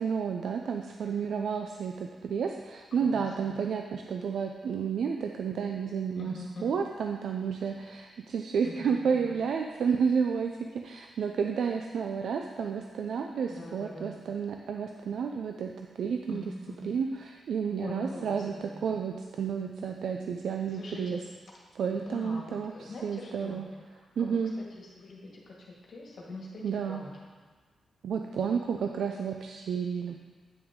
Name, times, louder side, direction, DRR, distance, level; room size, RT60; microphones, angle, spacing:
voice 1, 0.0-6.3 6.6-16.4 16.8-18.5 18.8-21.2 21.8-23.6 24.2-24.5 26.6-27.0 28.0-30.2, right 6 dB, 70° right, 4 dB, 0.4 m, -31 dB
voice 2, 3.0-3.5 6.2-6.8 8.6-9.3 13.5-14.2 16.3-16.9 17.8-18.9 20.7-21.2 21.9-23.6 23.9-27.1, left 2 dB, 60° left, -3 dB, 1.7 m, -44 dB
9.1 x 5.9 x 3.7 m, 1.4 s
wide cardioid pair, 145°, 0 cm